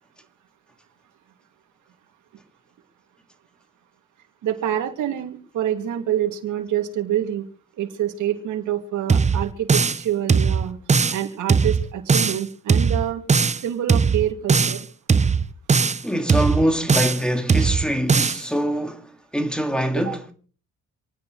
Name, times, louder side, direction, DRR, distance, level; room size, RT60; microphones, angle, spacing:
voice 1, 4.4-7.4 7.8-10.8 11.1-13.2 13.6-14.9 20.0-20.1, right 11 dB, 80° right, 2.6 m, -26 dB
sound 1, 9.1-10.0 10.3-11.2 11.5-12.4 12.7-13.6 13.9-14.8 15.1-16.0 16.3-17.2 17.5-18.4, right 5 dB, 25° right, 0.7 m, -19 dB
voice 2, 16.0-20.2, equal, 5° left, 2.2 m, -24 dB
28.0 x 9.9 x 3.2 m
cardioid pair, 90°, 30 cm